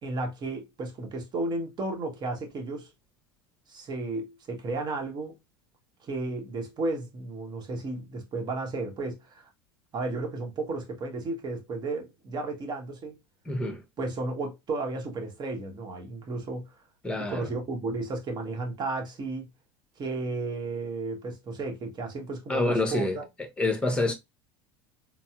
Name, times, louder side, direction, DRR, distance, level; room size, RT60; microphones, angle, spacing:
voice 1, 0.0-2.9 3.7-5.4 6.0-9.5 9.9-13.2 14.0-16.7 17.3-19.5 20.0-23.2, right 2 dB, 35° right, 1.0 m, -33 dB
voice 2, 13.4-13.8 17.0-17.5 22.5-23.2 23.6-24.1, left 2 dB, 10° left, 1.0 m, -27 dB
4.0 x 2.0 x 2.3 m
hypercardioid pair, 85°, 13 cm